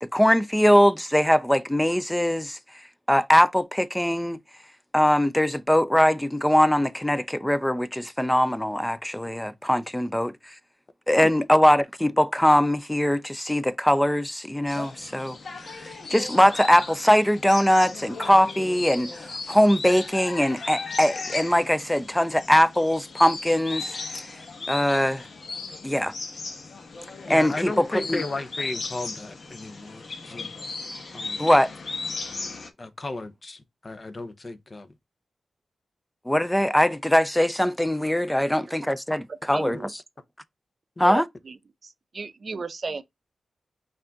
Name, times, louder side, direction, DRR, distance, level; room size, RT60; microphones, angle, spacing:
voice 1, 0.0-2.6 3.1-4.4 4.9-10.5 11.1-15.4 15.7-24.3 24.7-25.3 25.8-26.1 27.3-28.2 31.4-31.7 36.3-40.0 41.0-41.3, equal, 5° left, 0.5 m, -21 dB
sound 1, 14.7-32.7, left 3 dB, 60° left, 1.0 m, -36 dB
voice 2, 27.3-30.5 31.1-31.4 32.8-34.9 39.7-39.8 41.0-41.1, left 2 dB, 40° left, 0.8 m, -34 dB
voice 3, 39.3-39.9 41.0-41.6 41.8-43.0, right 4 dB, 55° right, 0.5 m, -35 dB
5.3 x 2.7 x 3.6 m
cardioid pair, 65°, 0 cm